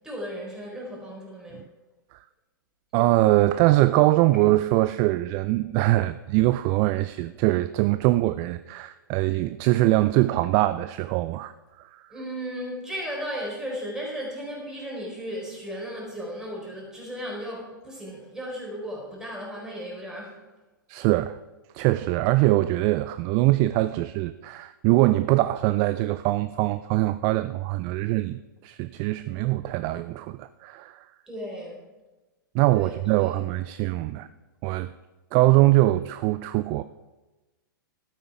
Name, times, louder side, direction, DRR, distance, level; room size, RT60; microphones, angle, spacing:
voice 1, 0.0-1.6 12.1-20.4 31.3-31.8 32.7-33.0 33.2-33.4, equal, 5° right, -3 dB, 4.3 m, -35 dB
voice 2, 2.9-12.0 20.9-21.4 21.7-31.0 32.5-34.3 34.6-34.9 35.3-36.8, right 17 dB, 35° right, 14 dB, 0.4 m, -23 dB
12.0 x 9.0 x 4.7 m, 1.2 s
figure-of-eight pair, 110°, 11 cm